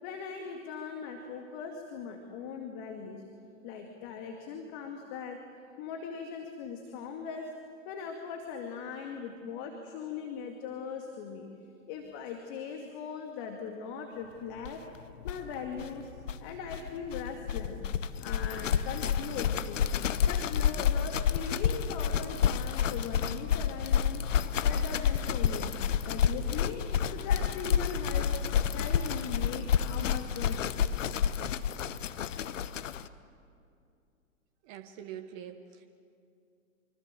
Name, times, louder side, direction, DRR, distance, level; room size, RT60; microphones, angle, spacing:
voice 1, 0.0-3.2 3.6-5.4 5.8-7.5 7.9-11.5 11.9-14.8 15.2-16.1 16.4-17.8 18.2-19.9 20.3-24.2 24.6-25.7 26.1-26.8 27.1-30.8, left 6 dB, 35° left, 3 dB, 2.3 m, -40 dB
sound 1, 14.6-14.7 14.9-15.0 15.2-33.1, left 8 dB, 65° left, 1.1 m, -29 dB
voice 2, 34.6-35.9, right 9 dB, 35° right, 6 dB, 1.3 m, -44 dB
25.5 x 24.5 x 7.6 m, 2.5 s
hypercardioid pair, 120°, 40 cm